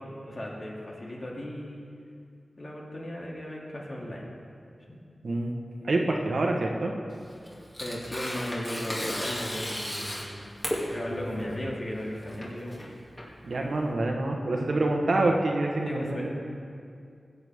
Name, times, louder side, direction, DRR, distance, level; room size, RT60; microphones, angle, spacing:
voice 1, 0.0-1.9 2.6-4.3 4.9-5.0 7.8-10.5 10.8-12.8 15.0-15.3 15.8-16.3, left 1 dB, 50° left, -4 dB, 2.5 m, -36 dB
voice 2, 5.8-6.9 13.4-16.3, right 2 dB, 75° right, 1 dB, 1.2 m, -26 dB
Tearing, 7.1-13.9, equal, 25° left, 2.5 m, -35 dB
15.5 x 8.3 x 3.6 m, 2.3 s
cardioid pair, 50°, 0 cm